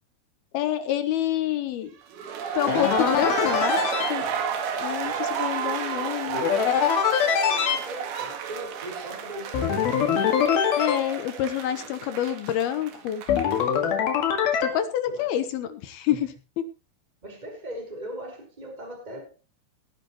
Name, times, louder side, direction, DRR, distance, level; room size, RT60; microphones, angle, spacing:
voice 1, 0.5-1.9 2.6-4.3 4.8-6.4 10.8-13.2 14.6-16.6, left 11 dB, 75° left, 11 dB, 2.4 m, -27 dB
sound 1, 2.1-13.8, right 7 dB, 65° right, 3.8 m, -31 dB
sound 2, 2.7-4.1 6.3-7.8 9.5-11.0 13.3-14.7, left 8 dB, 60° left, 3.5 m, -23 dB
voice 2, 7.1-10.3 11.7-12.1 15.0-15.4 16.1-16.2 17.2-19.3, equal, 10° right, 1 dB, 4.5 m, -40 dB
19.5 x 10.5 x 3.1 m, 0.28 s
omnidirectional pair, 5.6 m